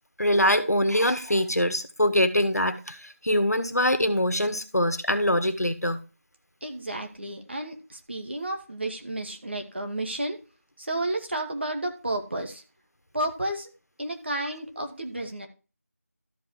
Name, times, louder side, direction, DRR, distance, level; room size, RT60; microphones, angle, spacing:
voice 1, 0.2-6.0, equal, 80° left, 1.7 m, -23 dB
voice 2, 6.6-10.4 10.8-12.6 13.1-13.7 14.0-15.5, right 1 dB, 45° right, 2.1 m, -32 dB
13.0 x 5.2 x 4.8 m
figure-of-eight pair, 170°, 8 cm